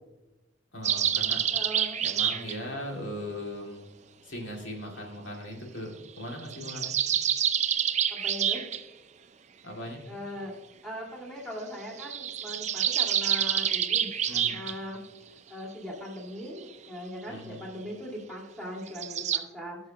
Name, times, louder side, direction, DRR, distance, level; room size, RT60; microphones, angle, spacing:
voice 1, 0.7-1.4 2.0-3.8 4.2-7.0 9.6-10.0 14.3-14.6 17.3-17.7, left 1 dB, 80° left, -1 dB, 2.2 m, -39 dB
sound 1, 0.8-2.6 6.3-8.8 12.0-14.7 18.9-19.4, right 9 dB, 40° right, 0.4 m, -27 dB
voice 2, 1.5-2.1 8.1-8.6 10.1-10.6 10.8-15.0 15.5-19.8, equal, 5° left, -3 dB, 2.0 m, -40 dB
16.0 x 6.4 x 2.8 m, 1.0 s
head